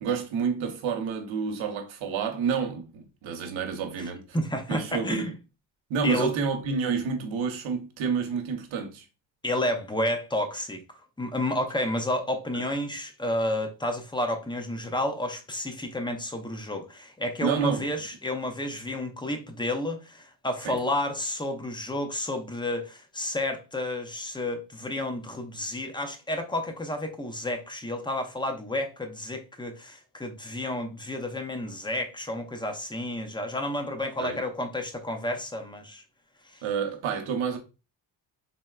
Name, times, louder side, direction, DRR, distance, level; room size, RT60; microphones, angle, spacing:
voice 1, 0.0-4.2 4.7-5.3 5.9-9.0 12.5-12.6 17.4-17.9 20.6-20.8 34.2-34.4 36.6-37.6, right 6 dB, 85° right, 0.8 m, -29 dB
voice 2, 4.3-5.3 6.0-6.3 9.4-10.8 11.2-36.0 36.5-36.6, left 1 dB, 10° left, 0.4 m, -31 dB
3.8 x 2.1 x 2.3 m
cardioid pair, 75°, 46 cm